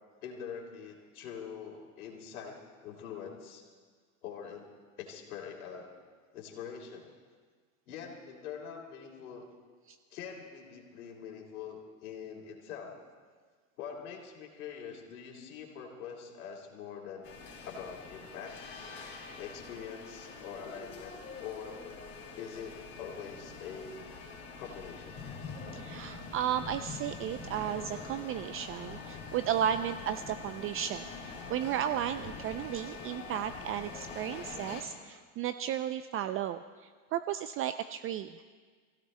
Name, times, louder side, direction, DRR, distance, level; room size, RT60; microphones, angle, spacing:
voice 1, 0.2-3.6 4.2-4.7 5.0-5.9 6.3-7.1 7.9-9.4 10.1-13.0 13.8-17.3 17.6-18.5 19.3-21.8 22.4-24.0 24.5-25.2, left 7 dB, 85° left, 0 dB, 3.1 m, -44 dB
sound 1, 17.2-34.8, left 4 dB, 25° left, 4.6 m, -45 dB
voice 2, 25.7-31.1 31.5-38.6, right 10 dB, 35° right, 11 dB, 0.4 m, -34 dB
29.0 x 16.0 x 2.2 m, 1.6 s
supercardioid pair, 110°, 42 cm